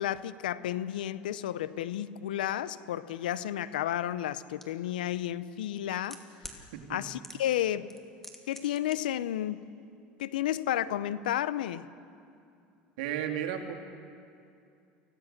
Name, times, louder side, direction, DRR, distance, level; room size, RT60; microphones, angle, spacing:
voice 1, 0.0-6.2 6.9-7.9 8.5-9.7 10.2-11.9, left 12 dB, 90° left, 16 dB, 0.7 m, -32 dB
sound 1, 4.6-4.7 5.6-6.6 7.2-7.6 7.9-9.0 9.2-9.3, left 1 dB, 5° left, 2.6 m, -45 dB
voice 2, 13.0-13.7, right 10 dB, 80° right, 4 dB, 2.3 m, -34 dB
24.5 x 17.0 x 6.6 m, 2.5 s
supercardioid pair, 90°, 5 cm